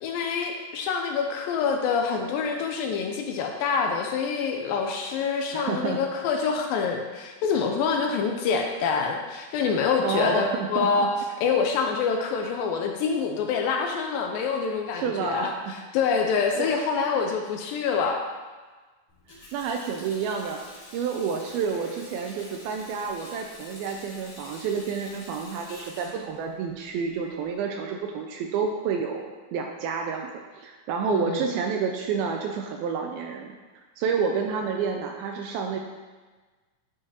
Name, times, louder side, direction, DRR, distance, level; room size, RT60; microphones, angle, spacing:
voice 1, 0.0-11.2 11.4-18.2 31.1-31.4, left 5 dB, 85° left, 3 dB, 2.1 m, -26 dB
voice 2, 5.5-6.0 10.0-11.1 14.9-15.7 16.6-16.7 19.5-20.6 20.9-30.3 30.6-33.5 34.0-35.8, right 6 dB, 80° right, 3 dB, 2.3 m, -29 dB
Water tap faucet, 19.1-27.5, left 1 dB, 55° left, 3.3 m, -47 dB
11.0 x 5.0 x 2.9 m, 1.3 s
omnidirectional pair, 4.5 m